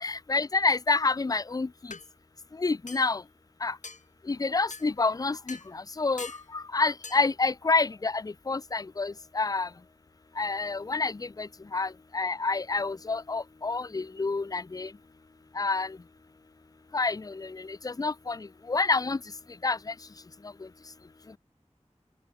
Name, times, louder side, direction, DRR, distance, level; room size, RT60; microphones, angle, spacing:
voice 1, 0.0-1.9 2.6-3.2 3.6-3.8 4.3-9.7 10.4-14.9 15.6-16.0 16.9-19.2 19.6-19.9, left 3 dB, 30° left, 0.3 m, -28 dB
sound 1, 1.9-2.1 2.9-3.1 3.8-4.0 4.7-4.9 5.5-5.7 6.2-6.5 7.0-7.2, left 3 dB, 90° left, 1.3 m, -42 dB
open air
wide cardioid pair, 45°, 12 cm